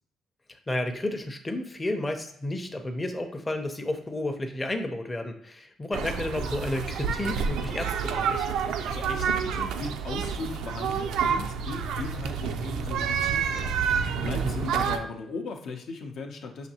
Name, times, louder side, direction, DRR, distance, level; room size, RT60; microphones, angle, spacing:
voice 1, 0.7-8.5 14.3-14.7, left 1 dB, 20° left, 5 dB, 0.5 m, -32 dB
sound 1, 5.9-15.0, right 6 dB, 85° right, 0.3 m, -28 dB
voice 2, 8.8-16.7, left 3 dB, 70° left, 3 dB, 0.6 m, -38 dB
5.7 x 2.6 x 2.8 m, 0.68 s
cardioid pair, 90°, 0 cm